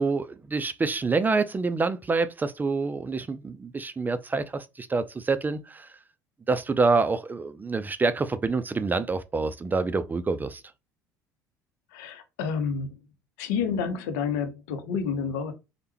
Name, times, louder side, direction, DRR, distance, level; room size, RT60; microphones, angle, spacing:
voice 1, 0.0-5.9 6.5-10.6, right 4 dB, 20° right, 0.3 m, -27 dB
voice 2, 11.9-13.0 13.4-15.5, left 6 dB, 70° left, 0.7 m, -29 dB
3.3 x 2.1 x 3.0 m
figure-of-eight pair, 65°, 10 cm